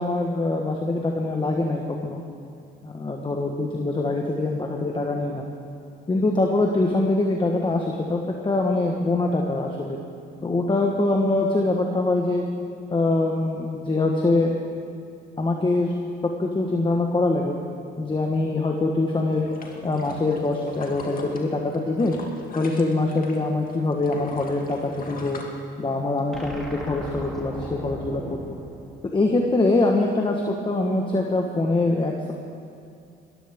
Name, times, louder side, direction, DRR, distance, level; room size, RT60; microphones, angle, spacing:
voice 1, 0.0-2.2 2.8-5.5 6.1-10.0 10.4-12.4 12.9-14.5 15.4-15.9 16.2-17.5 18.0-19.5 19.8-22.1 22.5-25.4 25.8-28.6 29.0-32.3, left 2 dB, 25° left, 1 dB, 1.4 m, -24 dB
sound 1, 19.2-23.4 23.7-26.2 26.6-26.7, left 3 dB, 45° left, 2.3 m, -40 dB
sound 2, 26.3-29.7, equal, ahead, 3.0 m, -37 dB
21.0 x 15.0 x 3.7 m, 2.5 s
cardioid pair, 90°, 20 cm